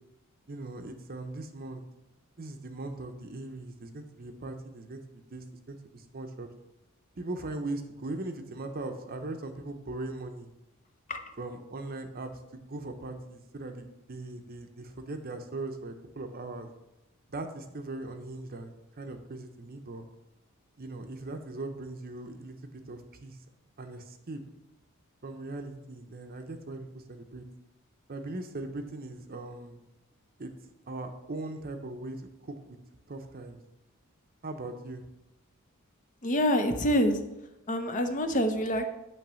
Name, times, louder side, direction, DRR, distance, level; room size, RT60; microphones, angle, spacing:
voice 1, 0.5-1.8 2.4-6.5 7.2-10.5 11.4-16.7 17.3-20.1 20.8-23.4 23.8-24.4 25.2-27.4 28.1-29.8 30.4-30.5 30.9-32.8 33.1-33.6 34.4-35.1, right 2 dB, 40° right, 6 dB, 0.7 m, -39 dB
voice 2, 36.2-37.2 37.7-38.8, equal, 35° left, 7 dB, 0.6 m, -26 dB
8.7 x 3.2 x 6.2 m, 0.95 s
head